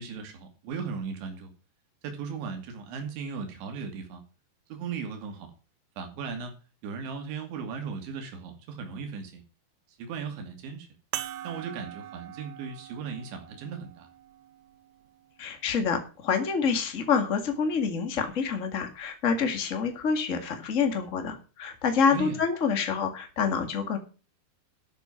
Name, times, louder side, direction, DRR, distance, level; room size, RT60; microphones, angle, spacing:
voice 1, 0.0-1.5 2.0-4.2 4.7-5.5 6.0-6.5 6.8-9.4 10.0-10.9 11.4-14.1 22.1-22.4, right 5 dB, 90° right, 5 dB, 4.8 m, -37 dB
sound 1, 11.1-15.9 16.7-16.8 19.0-19.1, right 11 dB, 75° right, 2.8 m, -43 dB
voice 2, 15.4-24.0, left 6 dB, 50° left, 6 dB, 0.9 m, -27 dB
13.0 x 7.1 x 5.9 m, 0.35 s
omnidirectional pair, 5.1 m